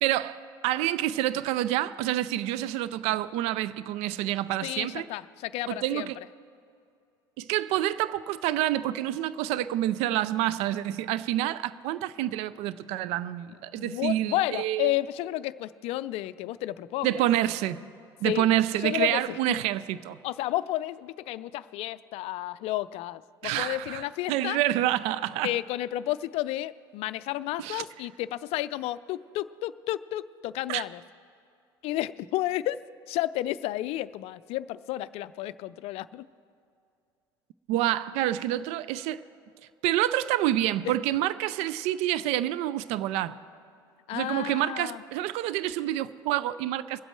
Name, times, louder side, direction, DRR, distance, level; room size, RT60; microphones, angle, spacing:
voice 1, 0.0-5.1 5.7-6.2 7.4-14.9 17.0-17.8 18.2-20.2 23.4-25.5 27.6-27.8 30.7-30.8 37.7-39.2 39.8-43.4 44.1-47.0, right 13 dB, 60° right, 0.4 m, -28 dB
voice 2, 4.6-6.1 13.8-17.1 18.2-18.5 18.8-19.6 20.2-24.6 25.4-31.0 31.8-32.8 33.1-36.3 40.8-40.9 44.1-45.0, left 15 dB, 55° left, 0.4 m, -32 dB
22.0 x 8.0 x 4.5 m
hypercardioid pair, 70°, 12 cm